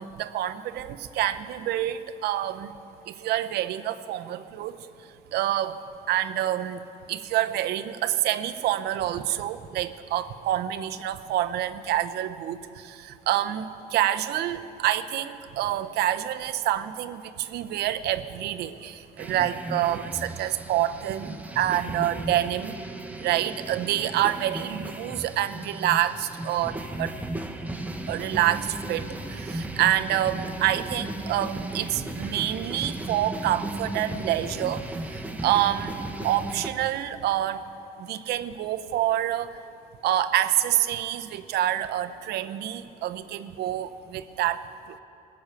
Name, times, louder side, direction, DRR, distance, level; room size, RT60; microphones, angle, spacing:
voice 1, 0.0-2.7 3.1-4.8 5.3-5.8 6.1-6.8 7.1-22.8 23.2-27.1 28.1-34.8 35.1-35.9 36.2-37.6 38.0-39.5 40.0-44.6 44.9-45.0, right 12 dB, 75° right, 10 dB, 0.7 m, -27 dB
sound 1, 19.2-36.7, right 1 dB, 10° right, 1.0 m, -36 dB
19.5 x 7.0 x 8.9 m, 2.7 s
cardioid pair, 110°, 17 cm